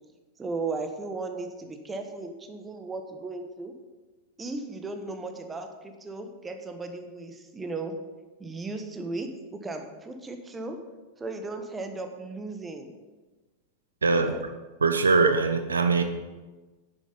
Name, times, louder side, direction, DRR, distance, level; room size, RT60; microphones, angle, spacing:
voice 1, 0.4-3.7 4.4-7.9 8.4-10.8 11.2-12.9 14.1-14.4, right 3 dB, 15° right, 6 dB, 1.3 m, -36 dB
voice 2, 14.8-16.0, right 4 dB, 75° right, 8 dB, 0.7 m, -22 dB
10.0 x 9.3 x 5.6 m, 1.2 s
figure-of-eight pair, 90°, 0 cm